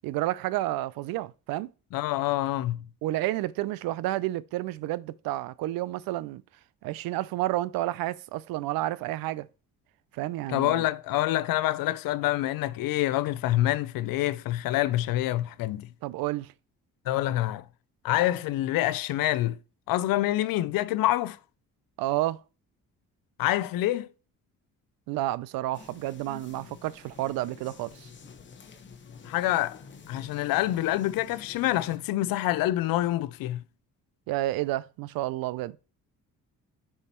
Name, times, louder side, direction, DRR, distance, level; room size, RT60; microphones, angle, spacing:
voice 1, 0.0-1.7 3.0-6.4 6.8-9.5 10.1-10.9 16.0-16.5 22.0-22.4 25.1-28.1 34.3-35.8, right 16 dB, 85° right, 0.5 m, -30 dB
voice 2, 1.9-2.8 10.5-15.9 17.1-17.6 18.0-19.6 19.9-21.4 23.4-24.1 29.2-33.6, left 15 dB, 80° left, 0.5 m, -26 dB
sound 1, 25.7-32.0, left 5 dB, 35° left, 0.9 m, -49 dB
5.6 x 4.1 x 4.3 m
cardioid pair, 100°, 34 cm